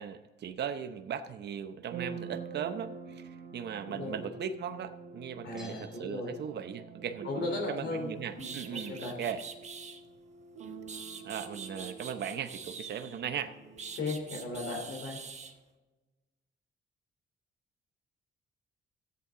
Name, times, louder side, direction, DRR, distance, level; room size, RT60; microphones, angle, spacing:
voice 1, 0.0-9.4 11.2-13.5, right 8 dB, 60° right, 8 dB, 0.8 m, -38 dB
sound 1, 1.8-14.4, right 5 dB, 75° right, 1.8 m, -47 dB
voice 2, 5.4-6.3 7.2-8.1 8.3-9.1 14.0-15.2, left 2 dB, 65° left, 0 dB, 3.2 m, -36 dB
Bell, 5.6-7.0 7.2-7.3, left 2 dB, ahead, 2.8 m, -57 dB
sound 2, 8.0-8.1 8.4-10.0 10.6-13.2 13.8-15.5, right 5 dB, 35° right, 1.2 m, -44 dB
13.5 x 8.3 x 3.7 m, 1.2 s
cardioid pair, 90°, 20 cm